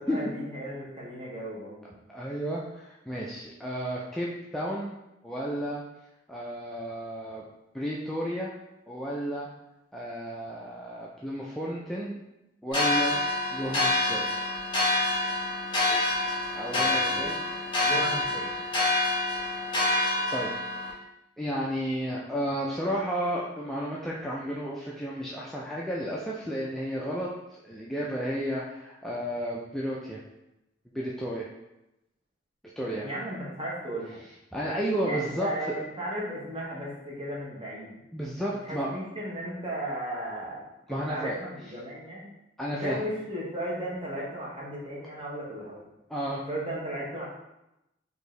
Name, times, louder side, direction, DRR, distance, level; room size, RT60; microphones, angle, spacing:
voice 1, 0.0-1.9 16.7-17.3 17.8-18.5 32.8-34.2 35.0-38.0 38.6-40.6 40.9-42.3 42.7-45.8 46.5-47.3, equal, 30° right, -4 dB, 1.0 m, -35 dB
voice 2, 2.1-4.9 5.2-5.8 6.3-7.4 7.7-8.5 8.9-9.5 9.9-12.2 12.6-13.2 13.5-14.3 16.5-17.4 20.3-21.0 21.4-30.2 30.9-31.5 32.8-33.1 34.5-35.7 38.1-38.9 40.9-41.4 42.6-43.0 46.1-46.4, equal, ahead, -5 dB, 0.3 m, -32 dB
sound 1, 12.7-20.9, left 2 dB, 25° left, 1.1 m, -27 dB
4.5 x 2.7 x 3.1 m, 0.90 s
head